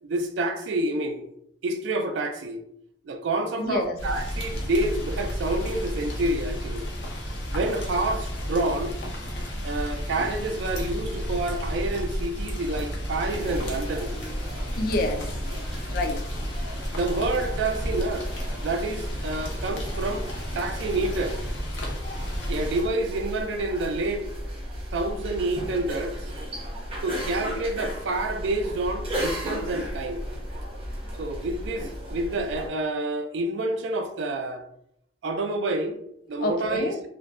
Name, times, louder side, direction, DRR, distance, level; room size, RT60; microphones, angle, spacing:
voice 1, 0.0-1.2 1.6-2.6 3.0-6.9 7.5-8.9 9.6-14.1 16.9-20.3 20.5-21.4 22.5-24.3 24.9-26.2 27.0-30.2 31.2-34.6 35.2-36.0 36.3-36.9, right 2 dB, 80° right, 0.3 m, -28 dB
voice 2, 3.6-4.0 14.8-15.4 15.9-16.2 36.4-37.0, left 2 dB, 50° left, 0.3 m, -28 dB
Rain, 4.0-22.8, equal, 90° left, 0.6 m, -32 dB
sound 1, 13.3-32.7, equal, 30° right, 0.6 m, -34 dB
2.5 x 2.2 x 2.3 m
head